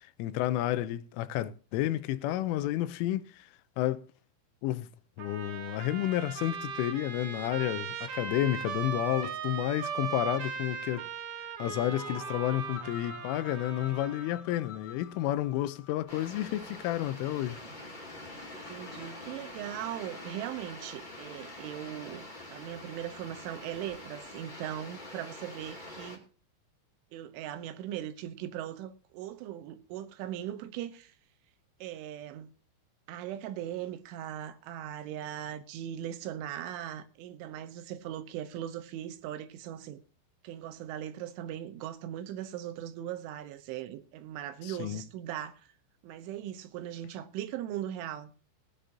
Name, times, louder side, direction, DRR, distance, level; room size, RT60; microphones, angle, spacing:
voice 1, 0.2-3.5 3.8-4.0 4.6-4.9 5.2-11.1 11.6-17.6 44.6-45.1, left 14 dB, 85° left, 3.3 m, -31 dB
Trumpet, 5.2-14.4, right 7 dB, 50° right, 3.0 m, -38 dB
sound 1, 11.8-16.4, left 6 dB, 55° left, 2.7 m, -47 dB
sound 2, 16.1-26.2, left 1 dB, 20° left, 1.3 m, -45 dB
voice 2, 18.5-26.2 27.1-31.1 31.8-32.5 33.1-40.0 40.4-45.7 46.0-48.3, right 11 dB, 80° right, 3.5 m, -39 dB
20.5 x 10.0 x 2.7 m
omnidirectional pair, 5.6 m